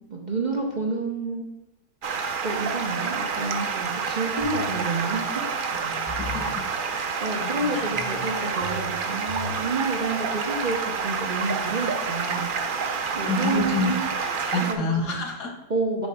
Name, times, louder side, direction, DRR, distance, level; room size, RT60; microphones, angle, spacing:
voice 1, 0.0-1.5 2.4-5.5 6.5-6.8 7.2-12.5 13.1-14.1 14.5-15.2 15.7-16.1, right 3 dB, 35° right, -1 dB, 0.8 m, -29 dB
Stream, 2.0-14.7, right 5 dB, 75° right, 0.4 m, -28 dB
sound 1, 4.4-4.7 5.1-5.2 5.7-6.5 7.4-8.2 8.6-9.6, left 1 dB, 35° left, 1.7 m, -38 dB
voice 2, 6.2-6.5 7.7-7.9 13.3-13.9 14.2-15.5, left 3 dB, 90° left, 1 dB, 2.0 m, -27 dB
6.4 x 4.8 x 4.8 m, 0.95 s
omnidirectional pair, 1.7 m